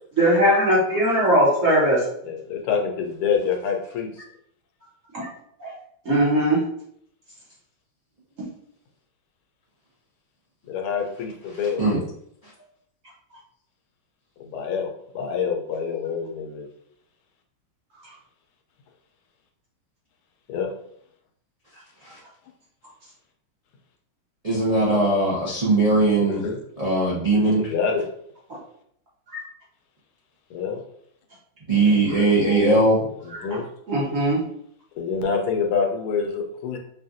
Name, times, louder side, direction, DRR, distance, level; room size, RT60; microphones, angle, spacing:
voice 1, 0.2-2.0 5.1-5.3 5.6-5.7 6.0-6.6 29.3-29.4 32.4-32.6 33.3-33.4 33.9-34.4, right 1 dB, 45° right, -6 dB, 1.2 m, -20 dB
voice 2, 2.2-4.1 10.7-11.8 14.4-16.7 20.5-20.7 26.2-26.6 27.5-28.1 30.5-30.8 33.2-33.7 35.0-36.8, left 6 dB, 90° left, 2 dB, 1.6 m, -26 dB
voice 3, 24.4-26.4 26.8-27.6 31.7-33.0, right 2 dB, 70° right, -9 dB, 0.3 m, -19 dB
5.7 x 2.4 x 2.5 m, 0.68 s
omnidirectional pair, 2.4 m